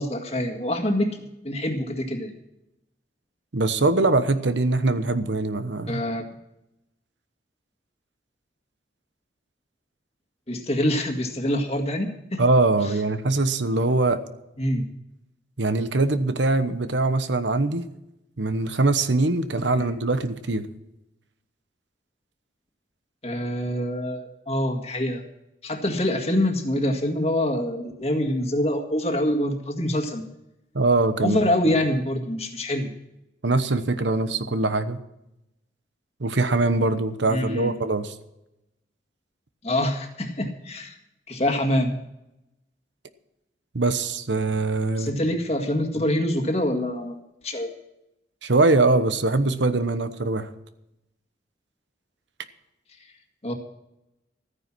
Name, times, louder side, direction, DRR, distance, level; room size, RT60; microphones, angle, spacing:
voice 1, 0.0-2.3 5.9-6.2 10.5-12.4 14.6-14.9 19.7-19.9 23.2-25.2 25.6-30.2 31.2-32.9 37.3-37.7 39.6-41.0 41.3-42.0 45.0-47.7 53.4-53.5, left 1 dB, 35° left, 1.8 m, -25 dB
voice 2, 3.5-6.0 12.4-14.2 15.6-17.9 18.4-20.7 30.7-31.4 33.4-35.0 36.2-38.1 43.7-45.1 48.4-50.5, right 2 dB, 85° right, 1.0 m, -22 dB
14.0 x 9.8 x 6.1 m
head